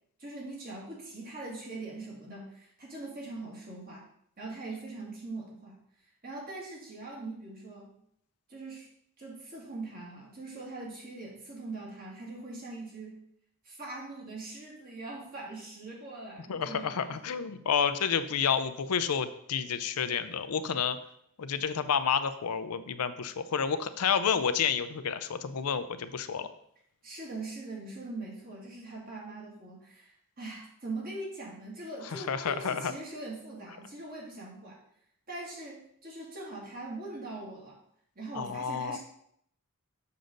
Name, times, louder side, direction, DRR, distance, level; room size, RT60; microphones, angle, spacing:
voice 1, 0.2-4.1 4.4-5.8 6.2-7.9 8.5-8.9 9.2-13.2 13.6-17.2 27.0-34.8 35.3-37.8 38.2-39.0, right 2 dB, 40° right, -3 dB, 2.3 m, -42 dB
voice 2, 16.5-21.0 21.4-26.5 32.1-32.9 38.4-39.0, left 7 dB, 90° left, 11 dB, 0.6 m, -30 dB
7.0 x 6.5 x 3.9 m, 0.70 s
head